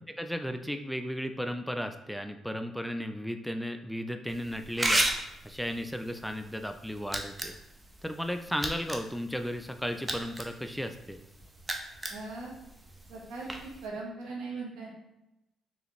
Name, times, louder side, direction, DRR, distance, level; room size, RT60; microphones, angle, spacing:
voice 1, 0.2-5.0 5.4-7.6 8.0-11.2, equal, ahead, 7 dB, 0.4 m, -35 dB
sound 1, 4.3-13.9, right 1 dB, 20° right, 0.7 m, -36 dB
voice 2, 12.1-12.5 13.1-14.9, right 3 dB, 80° right, -3 dB, 1.3 m, -39 dB
3.8 x 3.2 x 3.0 m, 0.90 s
supercardioid pair, 60°, 0 cm